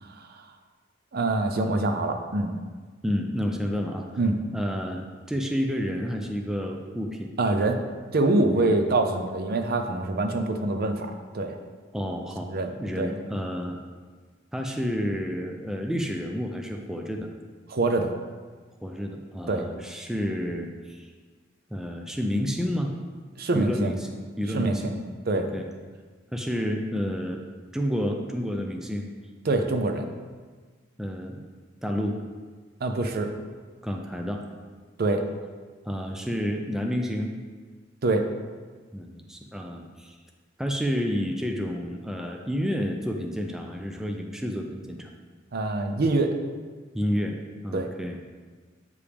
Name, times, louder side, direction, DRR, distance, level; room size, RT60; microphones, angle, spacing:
voice 1, 0.0-0.5 1.1-2.6 4.2-4.4 7.4-7.8 8.1-11.6 12.5-12.7 13.0-13.1 17.7-18.1 19.5-19.7 23.4-23.9 24.5-24.9 25.3-25.5 29.4-30.1 32.8-33.3 35.0-35.2 38.0-38.3 45.5-46.3 47.7-47.9, right 2 dB, 50° right, 6 dB, 0.6 m, -25 dB
voice 2, 3.0-4.1 4.5-5.0 5.3-7.3 8.6-8.8 11.9-12.5 12.8-13.8 14.5-17.3 18.8-21.1 21.7-22.9 23.5-24.1 24.4-24.9 25.3-25.6 26.3-27.4 27.7-29.1 31.0-31.5 31.8-32.2 33.8-34.4 35.8-37.3 38.9-40.2 40.6-45.1 46.9-47.4 47.6-48.3, equal, 5° right, 2 dB, 0.4 m, -30 dB
8.4 x 4.9 x 3.4 m, 1.5 s
head